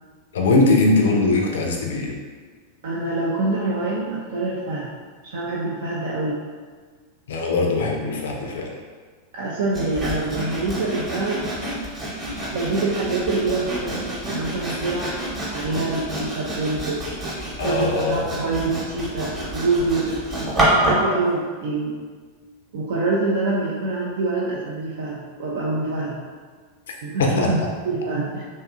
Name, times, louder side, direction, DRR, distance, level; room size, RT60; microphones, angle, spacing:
voice 1, 0.3-2.1 7.3-8.7 17.6-18.4 27.2-27.5, left 3 dB, 60° left, 1 dB, 0.4 m, -20 dB
voice 2, 2.8-4.9 5.2-6.4 9.3-11.5 12.5-17.0 17.6-21.9 22.7-26.2 27.0-27.6 27.9-28.4, right 3 dB, 55° right, -5 dB, 0.3 m, -25 dB
Sawing, 9.7-21.1, right 1 dB, 15° right, 0.8 m, -27 dB
2.6 x 2.4 x 2.4 m, 1.5 s
figure-of-eight pair, 90°, 0 cm